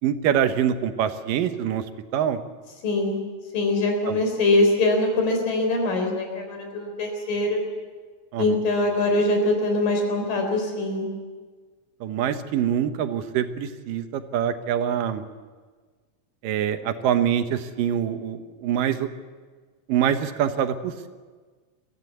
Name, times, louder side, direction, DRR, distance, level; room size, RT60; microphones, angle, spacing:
voice 1, 0.0-1.8 2.1-2.4 4.1-4.2 8.3-8.6 12.0-15.2 16.4-19.1 19.9-21.1, right 9 dB, 85° right, 9 dB, 2.7 m, -25 dB
voice 2, 2.8-3.2 3.5-7.6 8.4-11.1, left 2 dB, 85° left, 3 dB, 5.4 m, -23 dB
23.0 x 14.5 x 8.4 m, 1.4 s
omnidirectional pair, 3.8 m